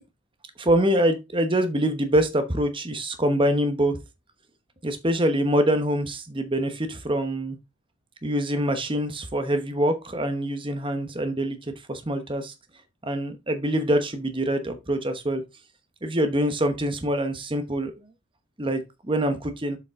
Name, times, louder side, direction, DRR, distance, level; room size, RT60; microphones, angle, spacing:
voice 1, 0.6-4.0 4.8-7.6 8.2-12.5 13.0-15.4 16.0-17.9 18.6-19.8, right 1 dB, 20° right, 1.0 m, -25 dB
7.6 x 5.3 x 3.6 m
head